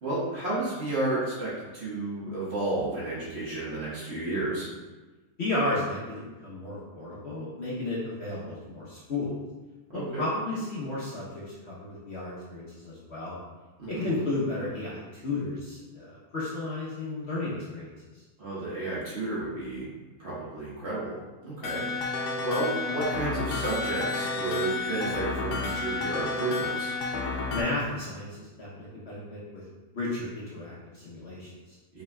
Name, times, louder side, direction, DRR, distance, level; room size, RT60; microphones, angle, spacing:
voice 1, 0.0-4.7 9.9-10.2 13.8-14.1 18.4-19.9 20.2-22.1 22.4-26.9 31.9-32.0, right 2 dB, 45° right, -8 dB, 1.4 m, -32 dB
voice 2, 5.4-9.3 9.9-13.4 13.9-18.2 27.5-29.6 29.9-31.8, left 2 dB, 50° left, -7 dB, 1.0 m, -33 dB
sound 1, 21.6-27.6, left 3 dB, 85° left, 1.2 m, -31 dB
5.4 x 4.0 x 2.3 m, 1.2 s
omnidirectional pair, 1.7 m